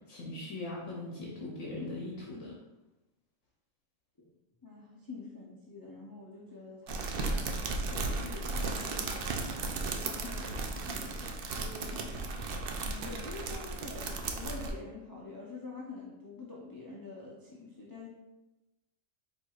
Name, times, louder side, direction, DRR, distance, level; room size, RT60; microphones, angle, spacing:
voice 1, 0.1-2.5, left 2 dB, 65° left, -3 dB, 1.0 m, -40 dB
voice 2, 4.6-7.4 7.9-12.2 12.8-18.1, left 3 dB, 35° left, -5 dB, 0.3 m, -46 dB
sound 1, 6.9-14.7, right 3 dB, 65° right, 0.5 m, -35 dB
4.5 x 4.3 x 2.4 m, 1.0 s
omnidirectional pair, 1.4 m